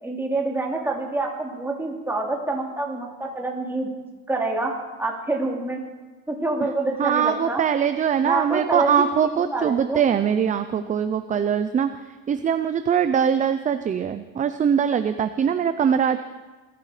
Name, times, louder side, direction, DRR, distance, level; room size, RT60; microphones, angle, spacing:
voice 1, 0.0-3.9 4.3-4.7 5.0-5.8 6.3-7.6 8.2-8.9 9.2-10.0, right 2 dB, 5° right, -1 dB, 2.8 m, -26 dB
voice 2, 7.0-11.9 12.3-16.2, right 8 dB, 20° right, 10 dB, 0.5 m, -22 dB
20.5 x 14.0 x 5.0 m, 1.2 s
cardioid pair, 155°, 36 cm